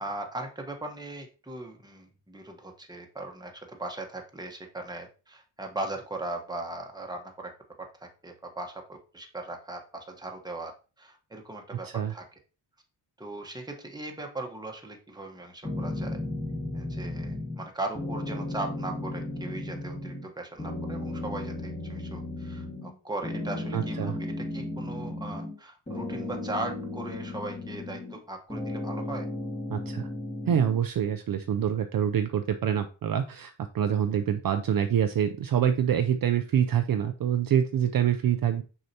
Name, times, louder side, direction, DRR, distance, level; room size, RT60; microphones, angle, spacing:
voice 1, 0.0-7.5 8.2-10.7 11.0-12.3 13.2-16.2 16.7-29.3, right 2 dB, 10° right, 2 dB, 1.1 m, -38 dB
sound 1, 15.6-17.7 18.0-20.3 20.6-22.9 23.2-25.6 25.9-28.2 28.5-30.8, left 1 dB, 15° left, 1.6 m, -35 dB
voice 2, 23.7-24.2 29.7-30.1 30.5-38.6, right 9 dB, 50° right, 7 dB, 0.5 m, -26 dB
6.4 x 5.7 x 2.8 m, 0.33 s
wide cardioid pair, 135°, 45 cm